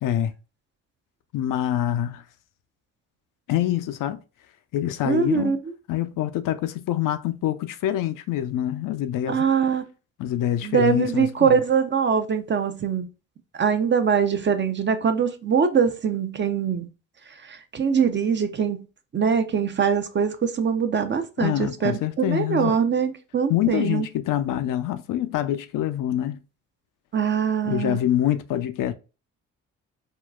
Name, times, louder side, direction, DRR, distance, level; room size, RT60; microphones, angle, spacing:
voice 1, 0.0-0.3 1.3-2.2 3.5-4.2 4.7-5.6 5.9-9.5 10.2-11.6 21.4-22.7 23.5-26.4 27.6-28.9, left 12 dB, 60° left, 0.5 m, -25 dB
voice 2, 5.0-5.7 9.3-9.8 10.6-13.1 13.6-16.9 17.4-18.8 19.1-24.1 27.1-28.0, right 6 dB, 30° right, 0.5 m, -23 dB
3.6 x 2.3 x 2.4 m
hypercardioid pair, 45°, 37 cm